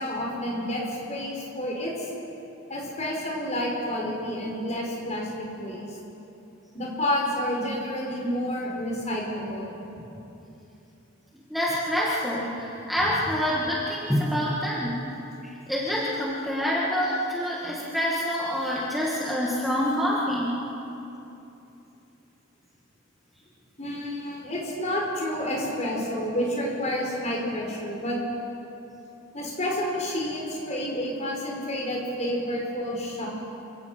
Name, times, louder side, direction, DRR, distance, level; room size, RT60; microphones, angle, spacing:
voice 1, 0.0-2.1 2.7-6.0 6.7-9.7 23.8-28.2 29.3-33.3, left 1 dB, 35° left, -2 dB, 5.3 m, -29 dB
voice 2, 11.5-15.0 15.4-20.6, equal, ahead, -5 dB, 1.9 m, -26 dB
27.5 x 17.0 x 5.9 m, 2.9 s
head